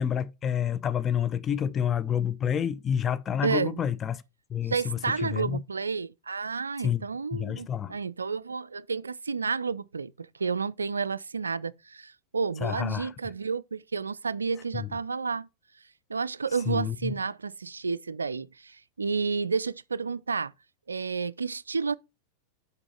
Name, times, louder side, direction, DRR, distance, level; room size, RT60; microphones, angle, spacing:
voice 1, 0.0-4.2 4.5-5.6 6.8-7.0 7.3-8.0 12.6-13.1 14.7-14.9 16.7-17.1, left 8 dB, 25° left, 0.5 m, -29 dB
voice 2, 3.4-3.8 4.7-15.5 16.1-20.5 20.9-21.9, right 5 dB, 75° right, 0.3 m, -31 dB
6.1 x 6.0 x 4.5 m
figure-of-eight pair, 90°, 0 cm